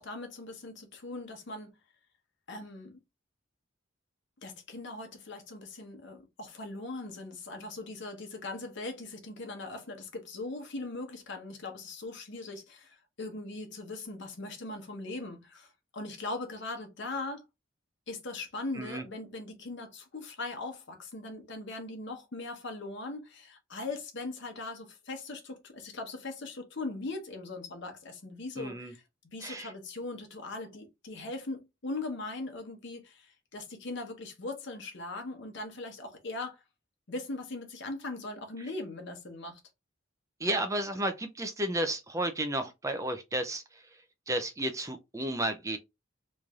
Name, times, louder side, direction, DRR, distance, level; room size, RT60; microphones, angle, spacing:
voice 1, 0.0-1.7 2.5-3.0 4.4-17.4 18.1-29.0 29.3-36.6 37.1-39.6, left 2 dB, 60° left, 1.0 m, -40 dB
voice 2, 28.6-28.9 29.4-29.7 40.4-43.6 44.3-45.8, right 1 dB, 15° right, 0.5 m, -32 dB
3.2 x 2.6 x 3.5 m
head